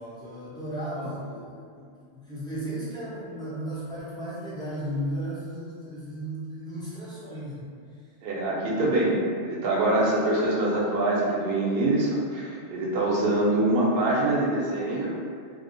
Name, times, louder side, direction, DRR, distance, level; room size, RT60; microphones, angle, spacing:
voice 1, 0.0-1.9 2.1-7.7, right 1 dB, 5° left, -11 dB, 0.4 m, -35 dB
voice 2, 8.2-9.1 9.4-15.1, right 2 dB, 60° right, -4 dB, 0.7 m, -24 dB
2.7 x 2.1 x 2.5 m, 2.2 s
omnidirectional pair, 1.2 m